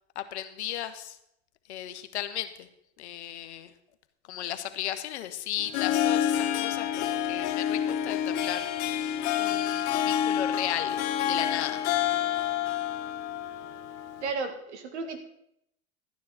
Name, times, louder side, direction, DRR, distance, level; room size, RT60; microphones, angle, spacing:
voice 1, 0.1-1.2 1.7-2.7 3.0-3.7 4.3-11.9, left 12 dB, 85° left, 10 dB, 1.1 m, -35 dB
Harp, 5.6-14.3, left 10 dB, 55° left, 1.1 m, -28 dB
voice 2, 14.2-15.2, right 4 dB, 85° right, 7 dB, 1.9 m, -33 dB
13.0 x 9.5 x 4.2 m, 0.77 s
hypercardioid pair, 95°, 33 cm